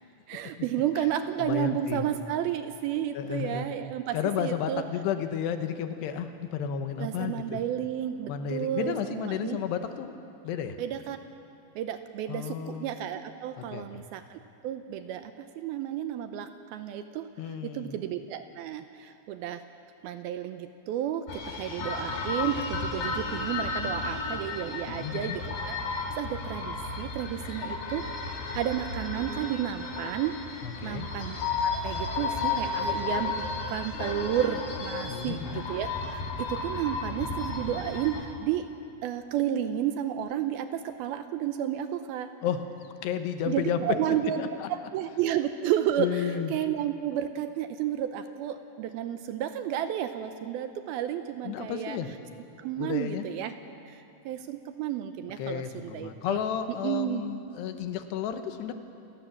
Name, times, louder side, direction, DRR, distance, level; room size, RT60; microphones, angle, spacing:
voice 1, 0.3-4.8 7.0-9.6 10.8-11.2 11.8-19.6 20.0-25.4 25.7-25.8 26.1-28.0 28.5-31.4 31.6-38.7 39.0-42.3 43.5-52.0 52.6-53.5 53.9-56.4 56.8-57.2, right 10 dB, 80° right, 9 dB, 2.3 m, -32 dB
voice 2, 1.4-2.1 3.1-3.7 4.1-7.6 8.3-10.1 10.4-10.8 12.3-12.9 13.6-13.9 17.4-18.0 24.9-25.4 30.6-31.1 35.1-35.6 42.4-42.6 43.0-44.7 46.0-46.5 51.4-52.1 52.8-53.3 55.4-58.7, left 8 dB, 80° left, 8 dB, 3.1 m, -32 dB
sound 1, 21.3-38.3, left 4 dB, 55° left, 3.8 m, -33 dB
28.0 x 17.5 x 7.3 m, 2.6 s
omnidirectional pair, 5.0 m